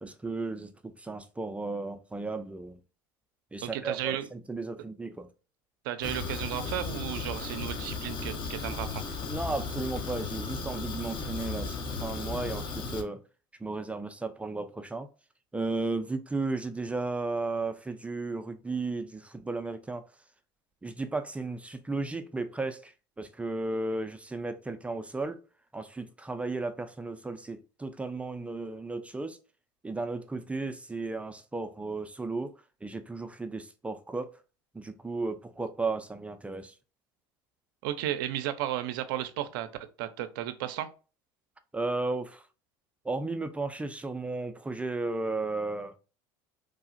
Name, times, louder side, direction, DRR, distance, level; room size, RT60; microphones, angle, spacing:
voice 1, 0.0-2.8 3.5-5.3 9.3-13.2 13.6-15.1 15.5-20.0 20.8-25.4 25.7-29.4 29.8-34.3 34.7-36.7 41.7-42.4 43.0-46.0, right 3 dB, 10° right, 0.3 m, -34 dB
voice 2, 3.6-4.3 5.8-9.0 37.8-39.7 40.0-40.9, right 12 dB, 75° right, 0.4 m, -34 dB
Fire, 6.0-13.0, left 4 dB, 45° left, 0.7 m, -35 dB
3.3 x 2.0 x 2.5 m
hypercardioid pair, 90°, 11 cm